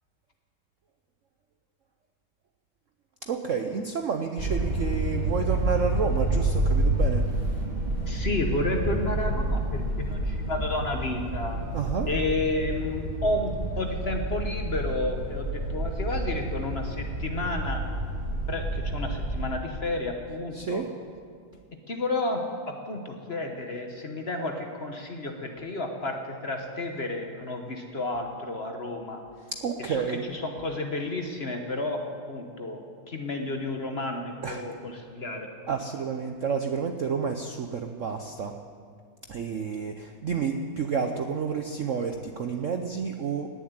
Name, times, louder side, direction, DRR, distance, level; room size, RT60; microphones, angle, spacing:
voice 1, 3.2-7.6 11.7-12.1 20.5-20.9 29.6-30.2 34.4-34.6 35.7-38.5 39.3-43.5, right 6 dB, 85° right, 5 dB, 0.6 m, -30 dB
sound 1, 4.4-19.4, right 1 dB, 20° right, 2.7 m, -29 dB
voice 2, 8.1-11.6 12.1-17.8 18.5-20.8 21.9-29.2 29.9-32.8 33.1-35.5, left 2 dB, 40° left, 4 dB, 1.0 m, -31 dB
17.5 x 7.4 x 9.6 m, 2.2 s
omnidirectional pair, 2.4 m